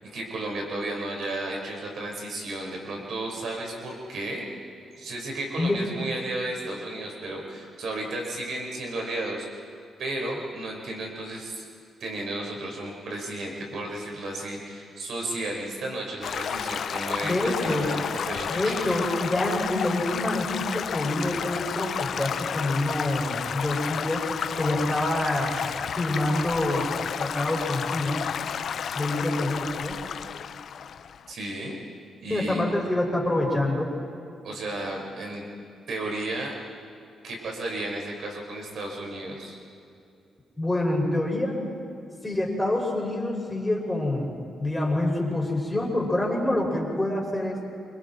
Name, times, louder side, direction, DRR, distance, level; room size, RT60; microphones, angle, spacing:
voice 1, 0.0-4.4 5.0-9.5 10.0-11.6 12.0-18.9 31.3-31.8 32.2-32.6 34.4-35.4 35.9-36.5 37.2-39.6, right 2 dB, 65° right, 0 dB, 5.3 m, -33 dB
Stream / Gurgling / Trickle dribble, 16.2-31.3, left 7 dB, 65° left, 0.7 m, -31 dB
voice 2, 17.2-17.9 18.5-24.2 24.6-25.7 26.0-26.9 27.2-28.2 28.9-30.0 32.3-33.9 40.6-41.6 42.2-47.6, left 1 dB, 15° left, -1 dB, 6.4 m, -26 dB
28.0 x 25.0 x 4.6 m, 2.6 s
cardioid pair, 70°, 0 cm